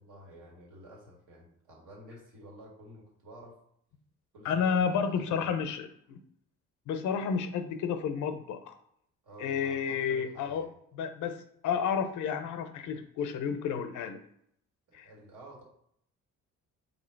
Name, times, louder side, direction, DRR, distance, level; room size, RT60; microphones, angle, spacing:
voice 1, 0.0-3.6 4.3-5.5 9.2-10.7 14.9-15.6, right 1 dB, 85° right, -3 dB, 1.8 m, -51 dB
voice 2, 4.4-6.2 6.9-8.8 9.4-10.7 11.0-11.4 11.6-14.2 14.9-15.1, left 6 dB, 75° left, 8 dB, 0.6 m, -31 dB
3.9 x 2.8 x 4.4 m, 0.69 s
cardioid pair, 90°, 30 cm